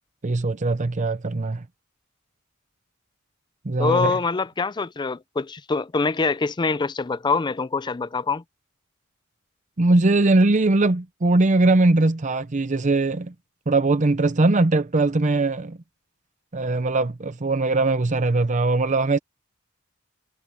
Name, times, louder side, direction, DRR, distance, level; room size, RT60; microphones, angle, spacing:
voice 1, 0.2-1.6 3.6-4.2 9.8-13.3 13.7-15.8 16.5-19.2, right 2 dB, 35° right, 0.7 m, -20 dB
voice 2, 3.8-8.4, left 4 dB, 20° left, 0.4 m, -24 dB
head